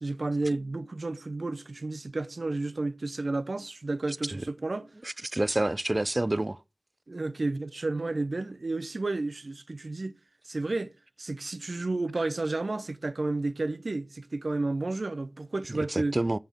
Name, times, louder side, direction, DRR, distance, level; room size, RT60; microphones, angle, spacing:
voice 1, 0.0-4.9 7.1-10.1 10.5-16.2, right 2 dB, 65° right, 0.7 m, -31 dB
voice 2, 4.1-4.4 5.0-6.6 15.7-16.4, right 1 dB, 35° right, 0.4 m, -29 dB
6.9 x 3.9 x 6.2 m
wide cardioid pair, 50°, 0 cm